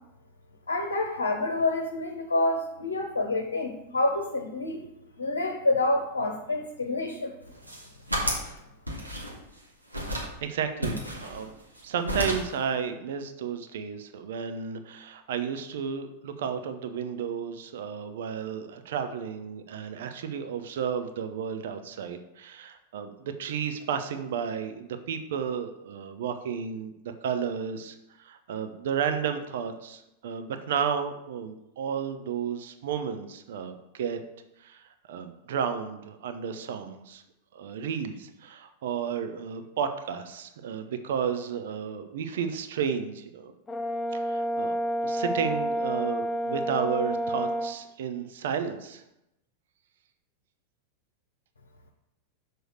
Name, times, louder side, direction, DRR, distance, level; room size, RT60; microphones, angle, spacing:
voice 1, 0.7-4.9 5.2-7.3, left 2 dB, 75° left, 2 dB, 0.9 m, -28 dB
sound 1, 7.5-8.5 8.9-9.6 9.9-10.3 10.8-11.8 12.1-12.6, equal, 85° right, 1.9 m, -32 dB
voice 2, 10.1-11.5 11.8-34.2 34.6-37.2 37.5-43.5 44.1-44.8 45.0-49.0, right 7 dB, 60° right, 8 dB, 0.7 m, -32 dB
Brass instrument, 43.7-47.8, equal, 15° left, 0.5 m, -29 dB
6.4 x 4.7 x 6.4 m, 0.87 s
figure-of-eight pair, 90°, 0 cm